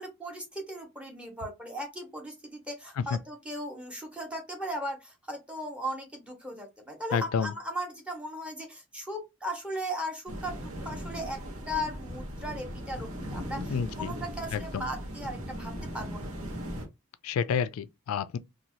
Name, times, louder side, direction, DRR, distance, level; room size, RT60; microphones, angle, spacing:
voice 1, 0.0-11.4 11.7-16.3, equal, 5° right, 0.9 m, -37 dB
voice 2, 7.1-7.5 13.7-14.1 14.5-14.8 17.2-18.4, left 7 dB, 90° left, 0.3 m, -29 dB
sound 1, 10.3-16.9, equal, 90° right, 0.9 m, -38 dB
2.6 x 2.3 x 3.0 m
head